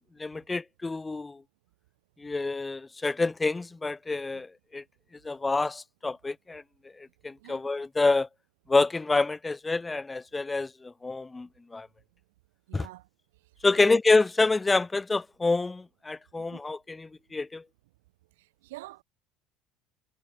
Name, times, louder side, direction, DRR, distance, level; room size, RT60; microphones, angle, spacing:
voice 1, 0.2-1.4 2.2-4.8 5.2-6.6 7.0-8.3 8.7-11.9 12.7-12.9 13.6-17.6, left 3 dB, 15° left, 0.8 m, -27 dB
voice 2, 12.7-13.1 13.7-14.0 16.4-16.6 18.4-19.0, right 19 dB, 90° right, 2.7 m, -46 dB
supercardioid pair, 95°, 0 cm